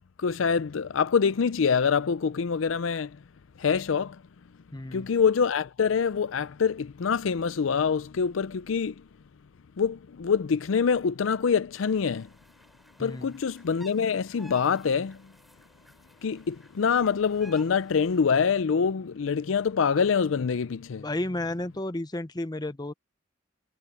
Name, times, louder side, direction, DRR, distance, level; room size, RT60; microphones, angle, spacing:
voice 1, 0.2-3.2 3.6-4.2 4.9-8.9 9.8-12.3 13.0-15.2 16.2-21.1, left 6 dB, 75° left, 0.5 m, -25 dB
voice 2, 4.7-5.1 13.0-13.4 21.0-22.9, left 1 dB, 20° left, 0.8 m, -32 dB
sound 1, 11.7-18.4, equal, ahead, 4.4 m, -55 dB
head